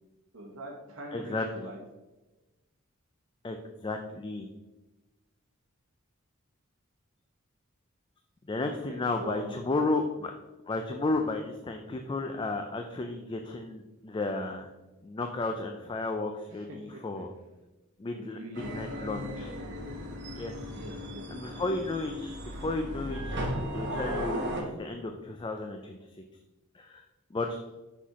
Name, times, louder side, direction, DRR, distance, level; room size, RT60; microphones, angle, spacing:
voice 1, 0.3-1.8 8.6-9.5 16.5-17.2 18.1-18.7 20.7-21.6, right 1 dB, 75° right, 0 dB, 1.1 m, -44 dB
voice 2, 1.1-1.7 3.4-3.6 3.8-4.5 8.5-10.3 10.7-14.7 15.0-17.3 18.0-19.5 20.4-20.5 21.3-23.4 23.7-26.0 26.8-27.0 27.3-27.6, left 2 dB, 25° left, 5 dB, 0.4 m, -33 dB
sound 1, 18.5-24.6, equal, 55° right, 1.2 m, -36 dB
6.0 x 5.8 x 3.0 m, 1.1 s
head